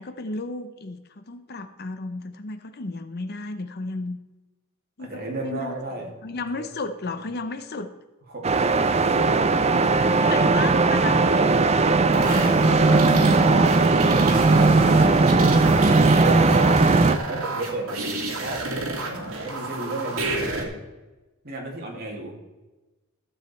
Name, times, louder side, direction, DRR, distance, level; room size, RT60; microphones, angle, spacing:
voice 1, 0.0-4.2 5.0-5.7 6.2-7.9 9.7-11.3 14.8-14.9, left 3 dB, 50° left, 10 dB, 0.7 m, -34 dB
voice 2, 5.0-6.7 8.3-10.5 11.1-13.2 13.5-16.9 17.3-18.7 19.3-20.8 21.4-22.4, right 2 dB, 45° right, -1 dB, 2.6 m, -34 dB
sound 1, 8.4-17.2, right 3 dB, 30° right, 0.5 m, -18 dB
sound 2, 12.1-20.6, right 2 dB, 75° right, 2.3 m, -29 dB
14.5 x 7.3 x 4.4 m, 1.1 s
head